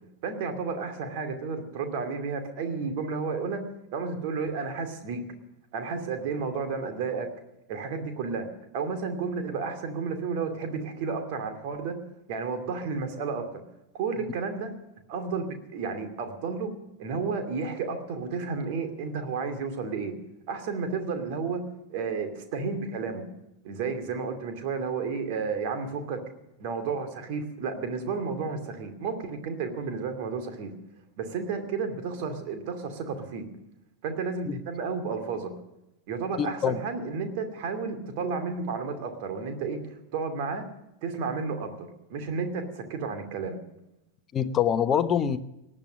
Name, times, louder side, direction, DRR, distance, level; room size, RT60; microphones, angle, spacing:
voice 1, 0.2-3.6 3.9-5.2 5.7-7.3 7.7-8.5 8.7-12.0 12.3-13.6 13.9-14.7 15.1-16.7 17.0-20.1 20.5-21.6 21.9-23.2 23.6-26.2 26.6-30.7 31.2-33.4 34.0-35.5 36.1-39.8 40.1-40.6 41.0-43.6, right 5 dB, 45° right, 6 dB, 2.6 m, -32 dB
voice 2, 36.4-36.8 44.3-45.4, left 8 dB, 25° left, 11 dB, 1.0 m, -25 dB
18.5 x 11.0 x 6.4 m, 0.90 s
figure-of-eight pair, 90°, 0 cm